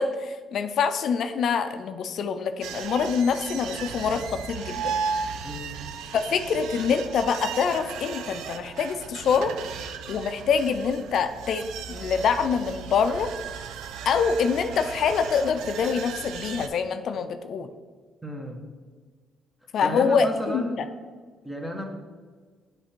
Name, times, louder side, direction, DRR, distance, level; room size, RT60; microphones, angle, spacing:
voice 1, 0.0-4.9 6.1-9.5 10.1-13.3 14.1-17.7 19.7-20.9, left 6 dB, 65° left, 9 dB, 0.4 m, -25 dB
sound 1, 2.6-16.7, right 6 dB, 90° right, 0.4 m, -36 dB
voice 2, 5.4-5.8 18.2-18.6 19.8-20.8 21.4-21.8, equal, 10° right, 2 dB, 1.2 m, -32 dB
8.2 x 3.4 x 4.4 m, 1.5 s
cardioid pair, 90°, 0 cm